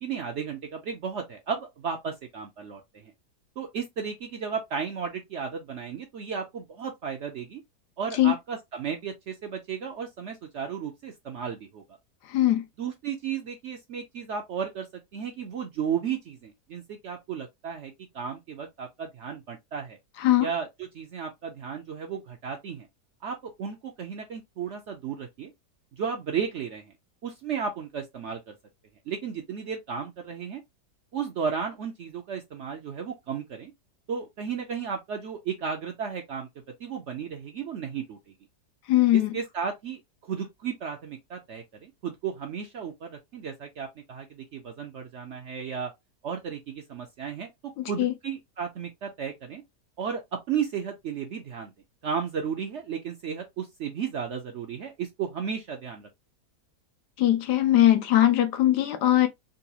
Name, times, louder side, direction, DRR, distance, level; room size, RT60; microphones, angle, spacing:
voice 1, 0.0-3.1 3.6-7.6 8.0-11.8 12.8-14.9 15.1-20.0 20.4-22.9 23.2-25.5 25.9-26.9 27.2-28.5 29.1-30.6 31.1-33.7 34.1-36.5 36.8-38.3 39.1-45.9 46.2-47.5 47.8-49.6 50.0-51.7 52.0-56.1, right 7 dB, 65° right, 0.7 m, -34 dB
voice 2, 12.3-12.6 20.2-20.5 38.9-39.4 47.8-48.1 57.2-59.3, left 13 dB, 90° left, 1.3 m, -21 dB
3.9 x 2.3 x 2.7 m
omnidirectional pair, 1.7 m